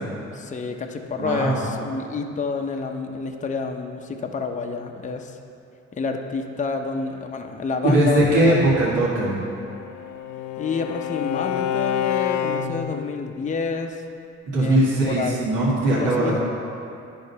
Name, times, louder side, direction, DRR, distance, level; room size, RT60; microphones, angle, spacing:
voice 1, 0.3-5.4 6.0-8.6 10.6-14.0 14.6-15.5 15.9-16.4, left 4 dB, 25° left, 4 dB, 0.6 m, -28 dB
voice 2, 1.2-1.6 7.8-9.4 14.5-16.4, right 1 dB, 85° right, -7 dB, 1.9 m, -20 dB
Bowed string instrument, 9.4-13.1, left 9 dB, 75° left, 0.5 m, -27 dB
10.5 x 3.8 x 5.5 m, 2.6 s
cardioid pair, 90°, 30 cm